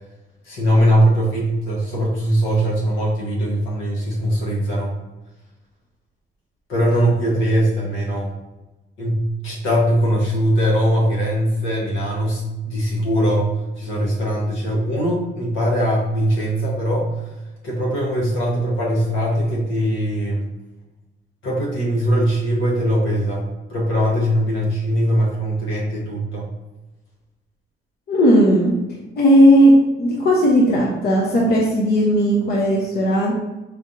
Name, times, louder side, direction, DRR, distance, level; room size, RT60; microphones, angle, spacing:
voice 1, 0.5-4.9 6.7-8.3 9.0-13.5 13.8-17.1 17.6-20.5 21.4-23.4 23.7-26.5, equal, 80° left, -3 dB, 1.3 m, -20 dB
voice 2, 28.1-28.7 29.2-33.3, equal, 55° left, -3 dB, 0.9 m, -15 dB
4.3 x 3.3 x 2.6 m, 1.0 s
cardioid pair, 90°, 20 cm